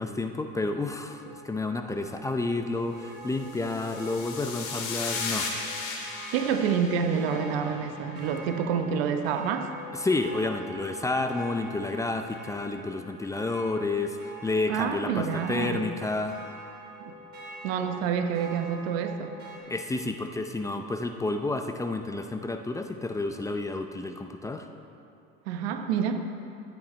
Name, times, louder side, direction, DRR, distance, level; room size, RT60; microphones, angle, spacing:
voice 1, 0.0-5.5 9.9-16.4 19.7-24.7, left 2 dB, 10° left, 6 dB, 0.5 m, -30 dB
sound 1, 1.1-19.6, right 2 dB, 35° right, 3.1 m, -45 dB
sound 2, 3.5-8.0, left 4 dB, 65° left, 2.4 m, -36 dB
voice 2, 6.3-9.7 14.7-15.8 17.1-17.2 17.6-19.3 25.5-26.3, right 7 dB, 90° right, 6 dB, 1.0 m, -28 dB
13.0 x 9.2 x 4.3 m, 2.6 s
cardioid pair, 125°, 30 cm